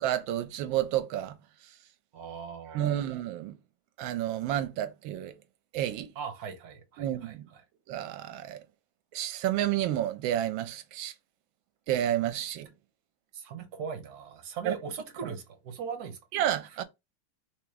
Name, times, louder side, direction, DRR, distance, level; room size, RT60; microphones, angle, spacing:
voice 1, 0.0-1.3 2.7-3.5 4.0-5.3 5.7-6.1 7.0-7.4 7.9-8.6 9.1-11.1 11.9-12.7 14.7-14.8 16.3-16.8, right 12 dB, 85° right, 1.4 m, -30 dB
voice 2, 2.1-3.1 6.1-7.6 13.3-16.2 16.7-16.8, right 6 dB, 55° right, 1.4 m, -40 dB
3.6 x 3.0 x 4.7 m
omnidirectional pair, 2.1 m